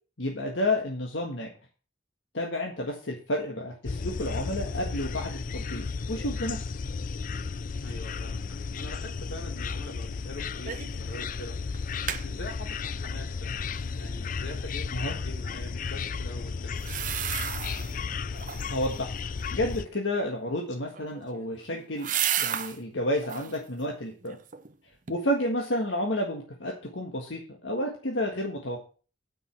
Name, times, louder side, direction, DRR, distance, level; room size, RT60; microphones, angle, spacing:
voice 1, 0.2-1.5 2.3-6.6 14.9-15.2 18.7-19.1 19.5-24.4 25.1-28.8, left 1 dB, 85° left, 0 dB, 1.7 m, -31 dB
sound 1, 3.9-19.9, left 5 dB, 45° left, 0.4 m, -34 dB
voice 2, 7.8-13.5 13.9-16.8, left 1 dB, 65° left, 1 dB, 3.2 m, -44 dB
sound 2, 10.7-11.0 11.3-11.4 11.7-12.2 16.7-18.0 18.3-18.9 20.8-22.8 23.2-23.6 24.1-24.7 25.1-25.2, right 9 dB, 45° right, 0.9 m, -32 dB
9.4 x 5.5 x 7.4 m, 0.39 s
head